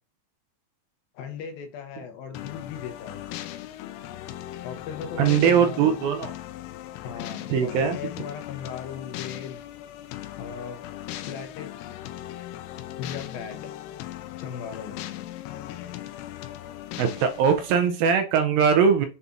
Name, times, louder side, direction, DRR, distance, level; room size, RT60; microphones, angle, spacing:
voice 1, 1.1-3.2 4.6-6.0 7.0-9.6 10.4-10.8 11.3-12.0 13.0-13.7 14.4-15.0, left 7 dB, 70° left, 6 dB, 2.5 m, -37 dB
sound 1, 2.3-17.9, left 13 dB, 90° left, 2.7 m, -38 dB
voice 2, 5.2-6.4 7.5-8.0 17.0-19.1, right 7 dB, 75° right, 6 dB, 2.2 m, -21 dB
7.1 x 4.1 x 3.7 m, 0.34 s
omnidirectional pair, 4.6 m